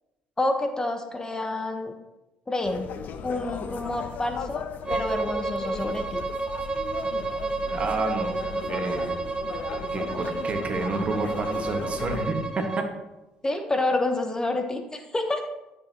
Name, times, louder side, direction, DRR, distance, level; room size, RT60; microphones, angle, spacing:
voice 1, 0.4-1.9 2.5-2.9 3.2-4.6 4.9-6.2 13.4-15.5, left 2 dB, 20° left, 6 dB, 1.0 m, -28 dB
sound 1, 2.6-12.2, left 6 dB, 65° left, 0.6 m, -37 dB
Bowed string instrument, 4.8-12.9, right 3 dB, 25° right, 1.0 m, -31 dB
voice 2, 7.7-9.2 9.7-12.6, right 3 dB, 40° right, 4 dB, 1.5 m, -30 dB
12.0 x 6.5 x 2.9 m, 1.0 s
supercardioid pair, 70°, 3 cm